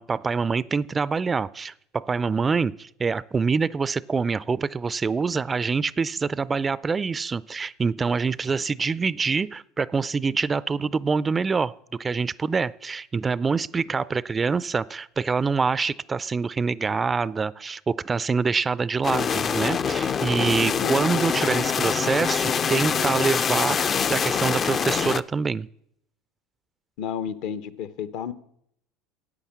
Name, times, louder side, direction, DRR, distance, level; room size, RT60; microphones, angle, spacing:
voice 1, 0.0-25.7, right 5 dB, 25° right, 20 dB, 0.4 m, -25 dB
sound 1, 19.0-25.2, left 6 dB, 35° left, 0.5 m, -25 dB
voice 2, 20.6-21.0 21.5-21.6 27.0-28.3, left 8 dB, 65° left, 14 dB, 0.9 m, -32 dB
9.8 x 8.7 x 7.3 m, 0.72 s
hypercardioid pair, 85°, 0 cm